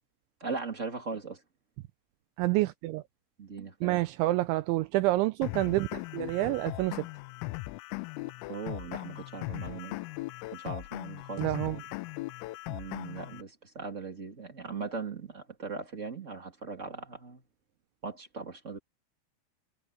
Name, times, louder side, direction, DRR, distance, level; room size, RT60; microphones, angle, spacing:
voice 1, 0.4-1.4 3.4-4.0 8.5-10.0 10.5-11.5 12.7-17.4 18.0-18.8, right 4 dB, 35° right, 1.2 m, -39 dB
voice 2, 2.4-3.0 3.8-7.0 11.4-11.8, right 18 dB, 85° right, 2.8 m, -28 dB
sound 1, 5.4-13.4, left 21 dB, 90° left, 3.4 m, -39 dB
omnidirectional pair, 5.8 m